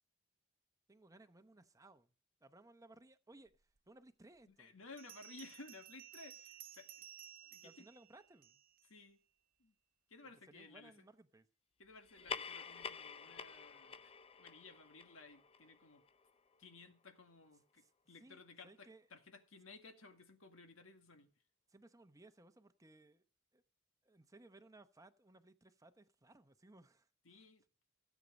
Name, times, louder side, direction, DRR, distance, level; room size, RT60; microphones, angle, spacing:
voice 1, 0.9-2.1 2.4-4.8 7.4-8.6 10.2-11.5 17.8-17.9 18.2-19.1 21.7-23.2 23.5-23.6 24.0-27.1, right 2 dB, 15° right, 0.8 m, -62 dB
Bell, 3.8-3.9 5.0-8.9, right 10 dB, 45° right, 0.7 m, -56 dB
voice 2, 4.5-7.1 7.5-7.8 8.8-9.2 9.6-9.7 10.1-10.9 11.8-16.0 16.6-21.3 27.3-27.6, left 3 dB, 80° left, 1.9 m, -57 dB
sound 1, 12.0-16.9, left 5 dB, 30° left, 0.5 m, -49 dB
16.0 x 8.3 x 5.2 m
head